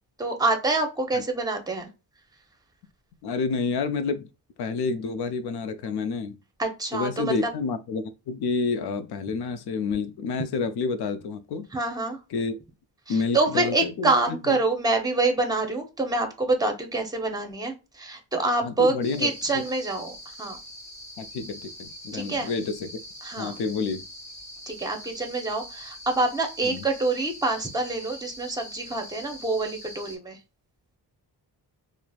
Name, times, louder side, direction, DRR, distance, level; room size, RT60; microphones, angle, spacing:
voice 1, 0.2-1.9 6.6-7.5 11.7-12.2 13.1-20.6 22.1-22.5 23.2-23.6 24.7-30.4, right 2 dB, 10° right, 0.7 m, -26 dB
voice 2, 3.2-4.3 4.6-6.4 6.9-11.7 12.3-12.6 13.1-14.1 14.5-14.6 18.6-19.3 21.2-23.0 23.4-24.0 26.6-26.9, left 4 dB, 65° left, 0.5 m, -29 dB
sound 1, 19.0-30.2, equal, 5° left, 1.2 m, -43 dB
3.0 x 2.0 x 2.3 m
cardioid pair, 65°, 43 cm